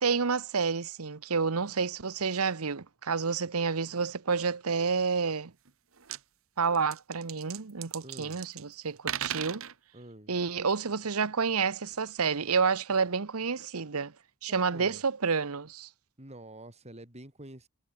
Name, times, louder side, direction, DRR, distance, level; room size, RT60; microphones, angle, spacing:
voice 1, 0.0-5.5 6.6-9.6 10.3-14.1 14.4-15.9, right 5 dB, 85° right, 1.0 m, -29 dB
sound 1, 5.7-5.8 6.0-6.2 6.7-8.6 9.0-9.7, right 10 dB, 65° right, 1.4 m, -37 dB
voice 2, 8.0-8.4 9.9-10.3 14.5-15.0 16.2-17.7, right 1 dB, 30° right, 4.9 m, -47 dB
head